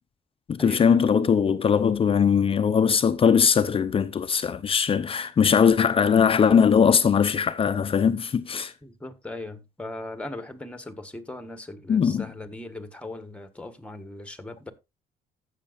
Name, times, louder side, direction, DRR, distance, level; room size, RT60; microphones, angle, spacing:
voice 1, 0.5-8.7 11.9-12.3, left 7 dB, 35° left, 0.7 m, -20 dB
voice 2, 8.8-14.7, left 2 dB, 5° left, 1.5 m, -39 dB
15.0 x 6.7 x 2.5 m
cardioid pair, 110°, 17 cm